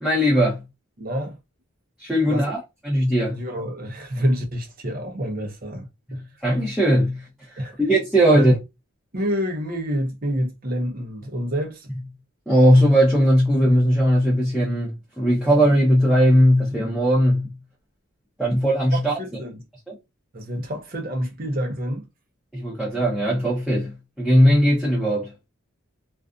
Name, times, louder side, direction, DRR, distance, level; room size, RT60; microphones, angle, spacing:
voice 1, 0.0-0.6 2.0-3.4 6.1-7.3 7.8-8.5 12.5-17.5 18.4-19.1 19.9-20.0 22.5-25.3, equal, ahead, 0.7 m, -19 dB
voice 2, 1.0-1.4 2.3-2.5 3.3-6.2 7.6-7.8 8.3-8.5 9.1-11.9 18.9-19.6 20.3-22.1, equal, 45° right, 0.7 m, -27 dB
2.5 x 2.4 x 2.4 m
head